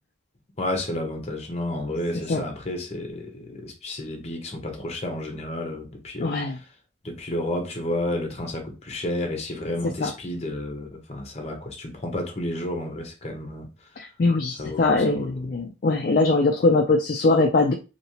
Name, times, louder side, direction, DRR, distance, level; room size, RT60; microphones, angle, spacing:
voice 1, 0.6-6.3 7.0-13.7 14.6-15.3, left 1 dB, 35° left, 0.8 m, -31 dB
voice 2, 6.2-6.6 9.8-10.1 14.0-17.7, left 3 dB, 50° left, 0.4 m, -21 dB
3.1 x 2.8 x 2.8 m
head